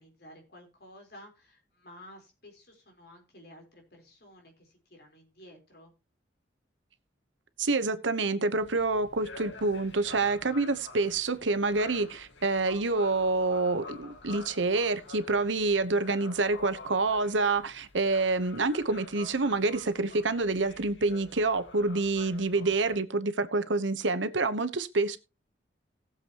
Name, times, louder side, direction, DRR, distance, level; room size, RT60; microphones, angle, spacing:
voice 1, 0.0-5.9, left 1 dB, 60° left, 4.1 m, -53 dB
voice 2, 7.6-25.2, right 3 dB, 85° right, 1.1 m, -27 dB
sound 1, 8.6-23.0, left 3 dB, 80° left, 1.8 m, -49 dB
18.5 x 7.5 x 3.0 m
head